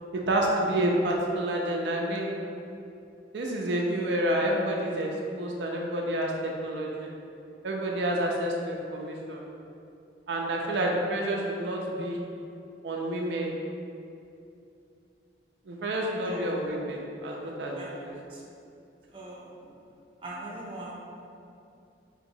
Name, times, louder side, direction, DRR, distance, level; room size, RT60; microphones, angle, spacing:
voice 1, 0.3-2.3 3.3-5.1 5.4-7.1 7.6-9.4 10.3-12.2 12.8-13.5 15.7-18.2, right 1 dB, 85° right, -1 dB, 0.5 m, -29 dB
voice 2, 17.8-18.4 19.1-19.4 20.2-21.0, right 1 dB, 30° right, -5 dB, 0.6 m, -41 dB
4.5 x 2.9 x 2.6 m, 2.6 s
head